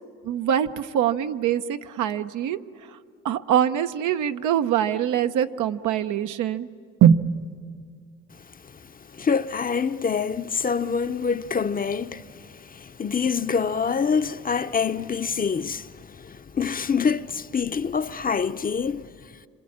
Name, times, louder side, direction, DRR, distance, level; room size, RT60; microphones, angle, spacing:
voice 1, 0.2-2.6 3.2-6.7 7.0-7.3, right 9 dB, 85° right, 0.9 m, -23 dB
voice 2, 9.1-19.1, left 6 dB, 30° left, 0.7 m, -26 dB
26.5 x 26.0 x 8.7 m
cardioid pair, 90°, 30 cm